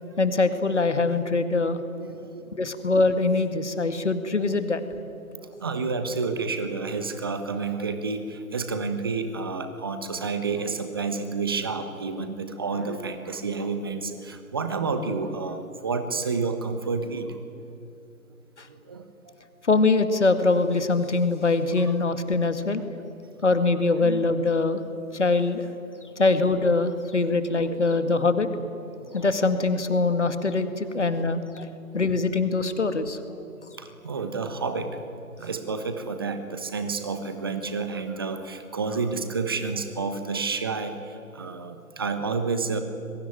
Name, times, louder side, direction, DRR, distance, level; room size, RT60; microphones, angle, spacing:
voice 1, 0.2-1.8 2.5-4.8 19.6-22.8 23.4-24.8 25.1-25.7 26.2-28.5 29.1-31.7 31.9-33.2, left 3 dB, 50° left, 10 dB, 2.3 m, -23 dB
voice 2, 2.0-2.6 5.6-17.4 18.7-19.3 24.0-24.2 27.1-27.2 27.9-28.0 29.0-29.2 31.1-31.2 32.1-32.2 33.8-35.0 35.4-42.8, right 4 dB, 15° right, 8 dB, 1.2 m, -30 dB
26.0 x 23.0 x 9.3 m, 2.7 s
figure-of-eight pair, 150°, 44 cm